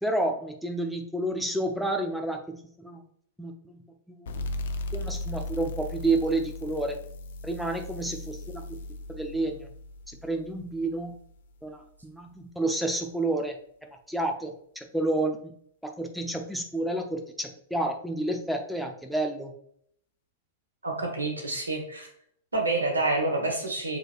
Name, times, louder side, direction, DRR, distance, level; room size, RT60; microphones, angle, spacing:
voice 1, 0.0-3.0 3.4-3.8 4.1-4.3 4.9-7.0 7.4-8.8 9.1-9.7 10.1-11.1 11.6-13.6 13.8-15.5 15.8-19.5, right 2 dB, ahead, 3 dB, 0.6 m, -30 dB
sound 1, 4.3-11.5, left 2 dB, 65° left, 0.5 m, -37 dB
voice 2, 20.8-22.1 22.5-24.0, right 2 dB, 80° right, 2 dB, 1.2 m, -28 dB
6.2 x 3.2 x 2.4 m, 0.66 s
figure-of-eight pair, 100°, 0 cm